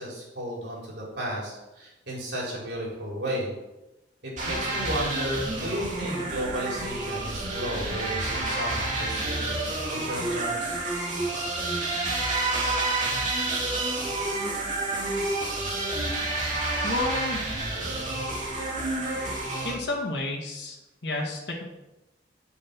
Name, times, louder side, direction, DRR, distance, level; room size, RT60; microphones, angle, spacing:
voice 1, 0.0-3.5 4.2-9.6 9.9-10.7, equal, 70° right, -4 dB, 4.1 m, -33 dB
sound 1, 4.4-19.7, right 2 dB, 45° right, 2.5 m, -29 dB
voice 2, 16.8-17.4 19.6-20.8 21.0-21.6, left 2 dB, 65° left, -2 dB, 1.7 m, -30 dB
8.7 x 6.7 x 6.0 m, 0.96 s
head